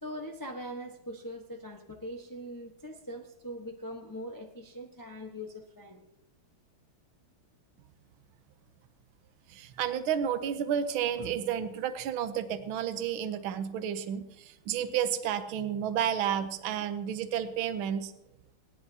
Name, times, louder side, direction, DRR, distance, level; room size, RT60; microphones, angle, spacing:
voice 1, 0.0-6.1, equal, 15° left, 2 dB, 0.7 m, -41 dB
voice 2, 9.5-18.1, right 9 dB, 75° right, 9 dB, 1.6 m, -31 dB
29.5 x 10.5 x 2.8 m, 0.87 s
omnidirectional pair, 2.3 m